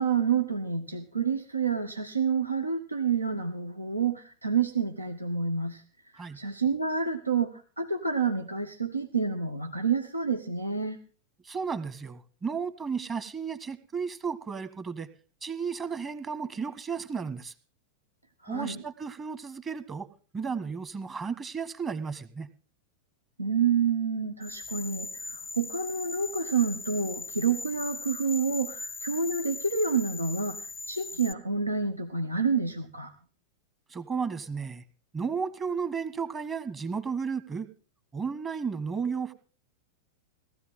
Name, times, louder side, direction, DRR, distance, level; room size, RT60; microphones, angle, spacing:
voice 1, 0.0-5.8 6.3-11.0 18.4-18.8 23.4-33.1, right 5 dB, 85° right, 7 dB, 1.1 m, -28 dB
voice 2, 11.4-15.1 15.4-17.5 18.5-20.1 20.3-22.5 33.9-34.8 35.1-37.7 38.1-39.3, right 5 dB, 20° right, 12 dB, 1.5 m, -33 dB
sound 1, 24.4-31.3, left 3 dB, 20° left, 0.6 m, -39 dB
18.0 x 14.0 x 3.7 m, 0.38 s
figure-of-eight pair, 90°, 0 cm